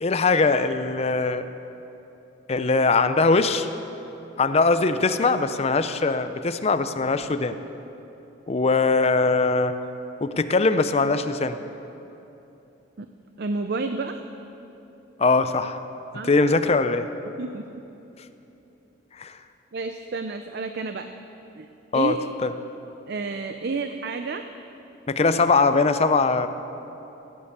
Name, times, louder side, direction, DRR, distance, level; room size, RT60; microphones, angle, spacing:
voice 1, 0.0-1.5 2.5-3.7 4.4-7.6 8.5-9.7 10.2-11.6 15.2-15.8 16.3-17.1 19.2-19.4 21.9-22.2 22.4-22.5 25.1-26.5, left 3 dB, 35° left, 10 dB, 0.5 m, -21 dB
voice 2, 13.4-14.2 16.1-16.4 17.4-17.8 19.7-21.1 21.5-21.7 21.9-22.1 23.1-24.4, right 3 dB, 60° right, 8 dB, 0.5 m, -30 dB
16.0 x 9.7 x 6.7 m, 3.0 s
head